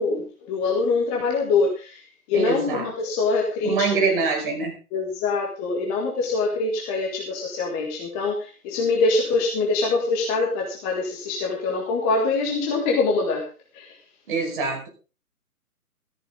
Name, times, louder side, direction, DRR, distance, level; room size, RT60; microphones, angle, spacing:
voice 1, 0.0-2.0 2.3-4.1 4.9-13.5 13.7-14.0, left 3 dB, 15° left, 0 dB, 1.7 m, -24 dB
voice 2, 2.3-2.9 3.6-4.7 14.3-14.9, right 4 dB, 35° right, 0 dB, 5.6 m, -24 dB
14.0 x 13.5 x 3.7 m, 0.33 s
figure-of-eight pair, 135°, 45 cm